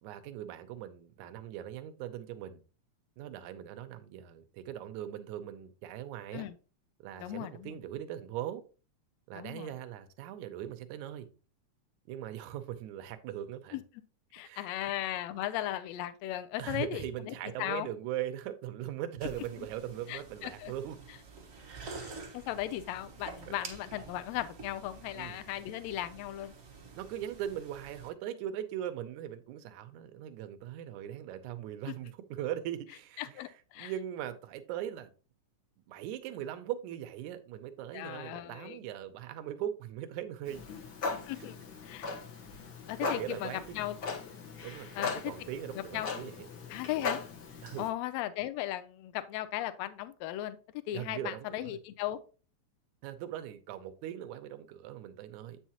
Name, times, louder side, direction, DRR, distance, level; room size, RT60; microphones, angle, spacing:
voice 1, 0.0-2.6 3.2-6.5 7.0-8.6 9.3-11.3 12.1-13.8 14.4-14.9 16.6-21.0 21.8-22.2 23.5-23.6 25.1-25.4 26.9-33.5 33.8-35.1 35.9-40.6 41.4-41.5 43.0-43.8 44.6-46.5 47.6-47.9 50.9-51.8 53.0-55.6, right 11 dB, 80° right, 2.1 m, -40 dB
voice 2, 7.2-7.7 9.3-9.7 13.7-13.8 14.3-17.9 20.1-20.7 22.0-26.5 31.9-32.0 33.2-33.9 37.9-38.8 41.3-41.6 41.8-42.1 42.9-44.3 44.9-45.3 45.7-46.1 46.7-47.2 47.8-50.6 50.9-52.2, left 14 dB, 80° left, 1.7 m, -37 dB
sound 1, 19.2-28.1, right 4 dB, 60° right, 0.8 m, -48 dB
Clock, 40.5-47.9, left 4 dB, 50° left, 1.3 m, -39 dB
8.1 x 5.6 x 2.9 m
omnidirectional pair, 3.6 m